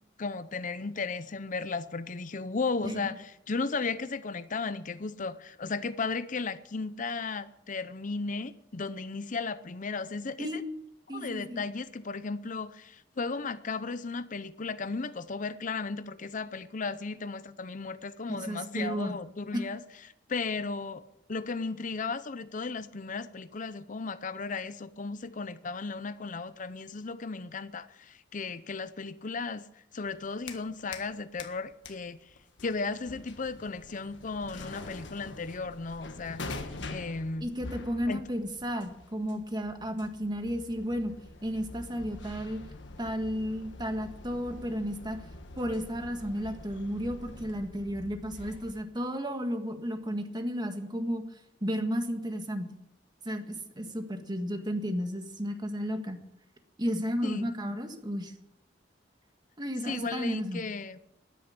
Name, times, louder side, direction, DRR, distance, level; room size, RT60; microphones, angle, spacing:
voice 1, 0.2-10.6 11.1-19.8 20.3-21.0 21.3-29.7 29.9-32.2 32.6-37.5 38.1-38.2 57.2-57.5 59.8-61.0, left 4 dB, 45° left, 0.7 m, -35 dB
voice 2, 11.1-11.6 18.4-19.2 19.5-19.6 37.4-41.1 41.4-42.6 43.0-45.2 45.6-51.2 51.6-52.7 53.2-56.2 56.8-58.3 59.6-60.6, equal, 25° right, 1.8 m, -33 dB
sound 1, 30.1-31.1 31.4-48.8, left 2 dB, 80° left, 1.5 m, -45 dB
13.0 x 10.0 x 8.8 m
head